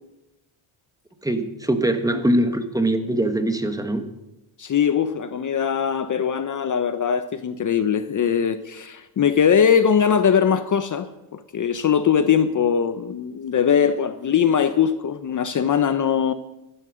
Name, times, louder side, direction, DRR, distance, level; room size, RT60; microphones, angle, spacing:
voice 1, 1.2-4.0, right 1 dB, 5° right, 8 dB, 1.3 m, -22 dB
voice 2, 4.6-16.3, left 7 dB, 40° left, 11 dB, 0.8 m, -21 dB
13.5 x 12.5 x 6.3 m, 0.95 s
cardioid pair, 120°, 48 cm